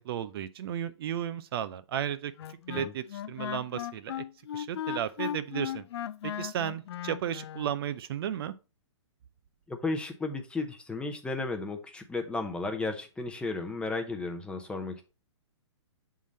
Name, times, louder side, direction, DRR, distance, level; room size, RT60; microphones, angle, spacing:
voice 1, 0.0-2.3 2.7-4.2 4.5-5.8 6.2-8.5, right 10 dB, 50° right, 0.5 m, -34 dB
Wind instrument woodwind instrument, 2.4-7.7, left 10 dB, 60° left, 0.5 m, -37 dB
voice 2, 9.7-15.0, left 3 dB, 5° left, 0.7 m, -34 dB
7.2 x 3.8 x 4.0 m
hypercardioid pair, 135°, 15 cm